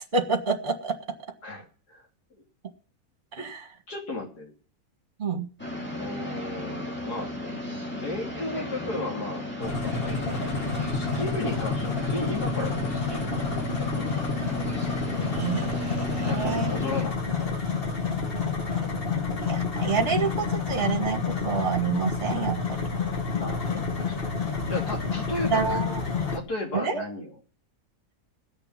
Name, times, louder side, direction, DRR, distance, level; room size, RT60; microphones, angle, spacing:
voice 1, 0.1-0.9 3.3-3.6 5.2-5.5 15.3-16.7 19.4-22.6 25.5-26.0 26.7-27.0, right 5 dB, 30° right, 6 dB, 1.7 m, -28 dB
voice 2, 1.4-2.4 3.4-3.5 3.9-4.5 5.7-7.3 8.0-13.5 13.9-14.4 16.2-17.4 23.3-25.9 26.3-27.3, left 2 dB, 80° left, 0 dB, 3.6 m, -35 dB
sound 1, 5.6-17.0, left 1 dB, 5° left, 2.4 m, -35 dB
sound 2, 9.6-26.4, left 4 dB, 40° left, 1.7 m, -29 dB
17.5 x 6.9 x 7.4 m, 0.43 s
omnidirectional pair, 1.7 m